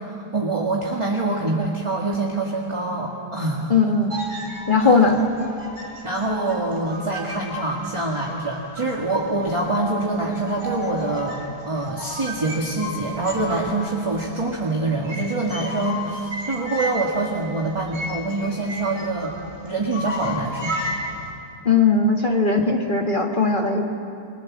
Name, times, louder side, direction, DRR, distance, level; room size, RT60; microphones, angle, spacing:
voice 1, 0.0-3.7 4.8-5.0 6.0-11.4 11.7-19.4 19.6-20.7, right 2 dB, 20° right, -1 dB, 2.0 m, -25 dB
voice 2, 3.7-4.2 4.7-5.2 21.7-23.9, left 4 dB, 30° left, 2 dB, 1.7 m, -18 dB
sound 1, 4.1-9.6 10.0-10.1 10.4-21.3, left 1 dB, 45° right, 3.0 m, -34 dB
29.5 x 22.0 x 7.5 m, 2.7 s
omnidirectional pair, 1.8 m